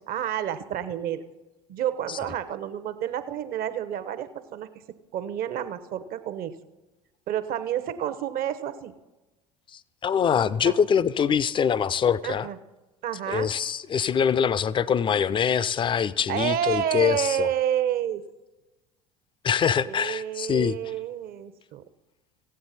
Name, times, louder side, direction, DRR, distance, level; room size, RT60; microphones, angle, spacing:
voice 1, 0.1-1.2 1.7-4.7 5.1-6.5 7.3-8.9 10.6-10.7 12.2-12.6 13.0-13.5 16.3-18.2 19.8-21.8, right 10 dB, 45° right, 0.8 m, -29 dB
voice 2, 9.7-12.5 13.3-17.5 19.4-20.8, left 7 dB, 25° left, 0.4 m, -24 dB
15.5 x 8.9 x 4.1 m
figure-of-eight pair, 70°, 20 cm